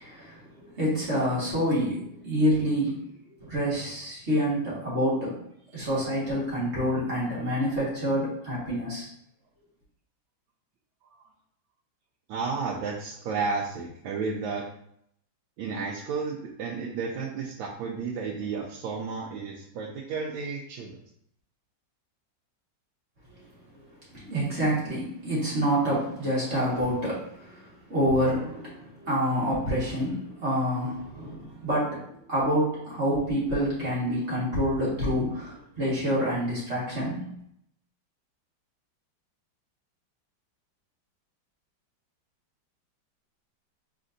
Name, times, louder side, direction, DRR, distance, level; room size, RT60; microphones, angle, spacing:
voice 1, 0.0-3.0 3.4-5.4 5.7-9.1 24.1-37.3, equal, 35° right, -7 dB, 1.9 m, -27 dB
voice 2, 12.3-14.6 15.6-21.0, right 4 dB, 90° right, -2 dB, 1.4 m, -32 dB
4.2 x 3.8 x 2.6 m, 0.70 s
omnidirectional pair, 2.1 m